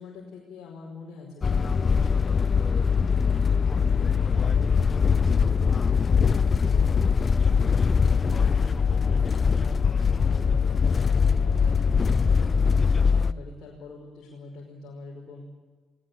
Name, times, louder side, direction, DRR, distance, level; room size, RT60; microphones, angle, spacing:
voice 1, 0.0-15.4, left 3 dB, 60° left, -2 dB, 5.3 m, -45 dB
sound 1, 1.4-13.3, left 6 dB, 40° left, 0.8 m, -22 dB
19.5 x 19.0 x 8.4 m, 1.3 s
hypercardioid pair, 50°, 0 cm